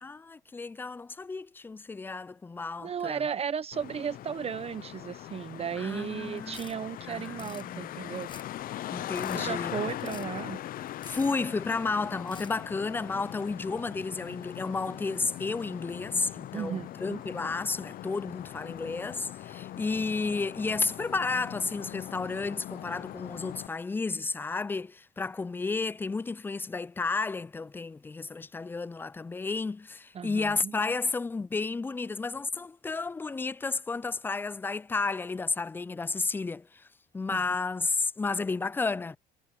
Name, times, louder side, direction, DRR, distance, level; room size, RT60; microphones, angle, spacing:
voice 1, 0.0-3.2 5.8-6.6 7.1-8.1 8.9-9.8 11.0-36.9 37.1-39.2, left 4 dB, 10° left, 0.3 m, -32 dB
voice 2, 2.8-8.3 9.3-10.6 16.5-17.2 30.1-30.7 37.3-37.4, right 7 dB, 35° right, 1.0 m, -35 dB
Traffic noise roadway noise, 3.7-23.7, left 13 dB, 60° left, 0.6 m, -40 dB
sound 1, 6.4-6.8 7.2-7.7 8.2-8.6 9.0-9.5 10.0-10.4 10.9-11.4 12.2-12.6, left 5 dB, 30° left, 1.1 m, -48 dB
cardioid pair, 110°, 17 cm